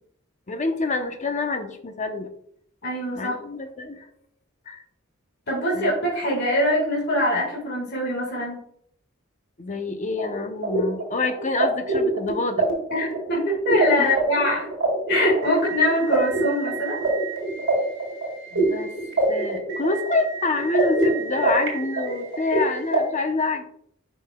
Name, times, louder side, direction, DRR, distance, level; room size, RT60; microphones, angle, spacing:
voice 1, 0.5-2.3 3.2-4.1 4.7-4.8 5.7-5.9 9.6-12.7 14.0-14.2 18.5-18.9 19.3-23.6, left 3 dB, 35° left, 7 dB, 0.8 m, -27 dB
voice 2, 2.8-3.4 5.5-8.6 12.9-14.7 15.1-17.0, left 1 dB, 55° left, -3 dB, 1.9 m, -23 dB
sound 1, 10.2-23.0, right 2 dB, 60° right, 2.1 m, -25 dB
10.5 x 5.3 x 2.3 m, 0.67 s
head